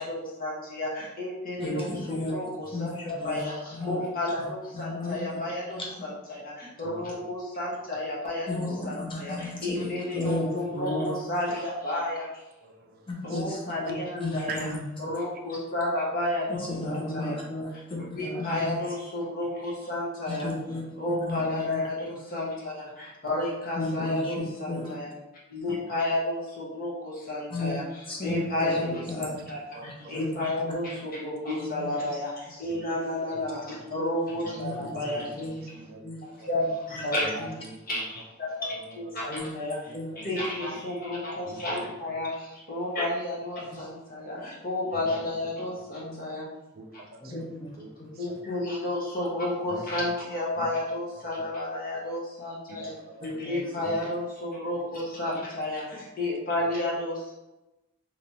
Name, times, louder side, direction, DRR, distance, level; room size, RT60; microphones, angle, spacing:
voice 1, 0.0-12.4 13.2-14.6 15.0-17.4 18.2-20.5 21.0-25.1 25.5-27.8 28.2-35.3 36.2-37.5 37.9-39.8 40.2-46.5 46.9-47.0 48.2-52.9 53.4-57.3, left 1 dB, 45° left, -5 dB, 1.1 m, -31 dB
voice 2, 1.6-2.3 2.7-3.4 3.7-4.0 4.4-5.5 5.7-6.0 8.5-11.1 13.1-14.8 16.5-18.8 20.3-20.8 21.1-21.8 23.7-25.0 27.5-29.4 29.8-30.3 30.6-30.9 31.6-32.0 34.5-35.6 36.0-36.2 36.5-37.0 37.4-37.5 39.3-39.5 39.9-40.1 46.0-46.2 47.2-47.7 48.0-48.1 53.2-53.8 55.2-55.4, left 2 dB, 25° left, -2 dB, 0.8 m, -34 dB
voice 3, 12.6-13.4 13.8-13.9 14.5-14.7 15.0-15.1 28.3-28.4 28.8-28.9 29.7-30.2 32.7-32.8 33.3-33.9 34.3-36.1 36.4-36.5 37.2-38.0 38.7-39.1 39.9-40.4 41.4-41.8 44.9-45.1 46.7-48.4 49.7-49.9 50.6-50.8 51.1-51.2 52.7-53.4 53.8-53.9 55.2-55.7 56.6-56.7, right 3 dB, 50° right, 3 dB, 0.4 m, -45 dB
3.4 x 3.0 x 2.8 m, 0.99 s
head